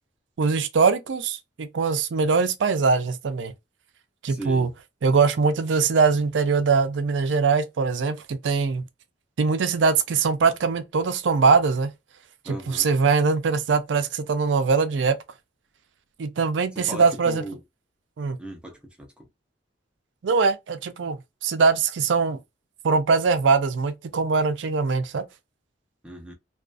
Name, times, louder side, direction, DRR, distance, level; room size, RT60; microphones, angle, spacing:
voice 1, 0.4-3.5 4.2-4.7 5.0-8.9 9.4-11.9 12.5-15.2 16.2-17.4 18.2-18.4 20.2-22.4 22.8-25.2, right 4 dB, 75° right, 0.4 m, -22 dB
voice 2, 4.3-4.7 12.4-12.9 16.7-17.6 18.4-19.3 26.0-26.3, equal, 5° right, 0.6 m, -38 dB
2.3 x 2.3 x 2.3 m
head